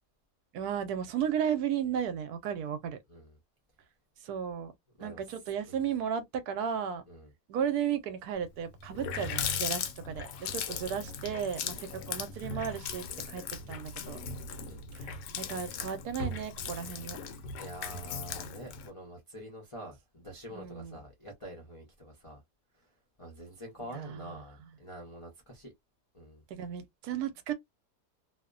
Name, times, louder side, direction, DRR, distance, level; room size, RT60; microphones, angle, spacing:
voice 1, 0.5-3.0 4.2-4.7 5.0-7.0 7.5-14.2 14.9-17.2 20.5-21.0 23.9-24.3 26.5-27.5, right 8 dB, 75° right, 1.1 m, -34 dB
Water tap faucet, 8.5-8.6 8.8-18.9, left 6 dB, 85° left, 1.2 m, -38 dB
voice 2, 10.6-11.0 14.6-14.8 17.6-22.4 23.2-25.7 26.1-26.4, equal, 45° left, 0.4 m, -46 dB
2.8 x 2.1 x 2.4 m
omnidirectional pair, 1.7 m